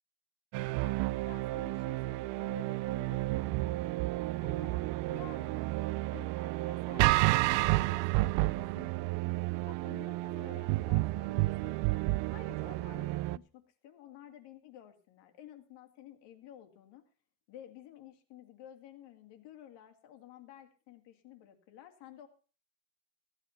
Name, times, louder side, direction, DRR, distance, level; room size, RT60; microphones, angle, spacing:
sound 1, 0.5-13.4, right 20 dB, 80° right, 0.5 m, -31 dB
voice 1, 1.3-4.0 4.4-5.6 6.1-9.4 9.7-17.0 17.5-22.3, left 11 dB, 70° left, 5 dB, 2.5 m, -53 dB
15.5 x 9.0 x 5.7 m, 0.37 s
cardioid pair, 180°, 43 cm